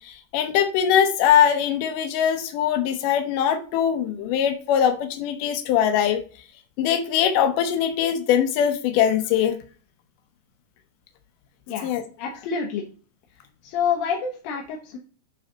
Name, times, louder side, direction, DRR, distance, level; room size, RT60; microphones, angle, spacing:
voice 1, 0.0-6.2 6.8-9.6 11.8-12.0, left 9 dB, 85° left, 7 dB, 1.8 m, -21 dB
voice 2, 12.2-12.8 13.6-15.0, left 6 dB, 70° left, 0 dB, 2.6 m, -27 dB
8.5 x 4.2 x 5.1 m, 0.38 s
omnidirectional pair, 4.9 m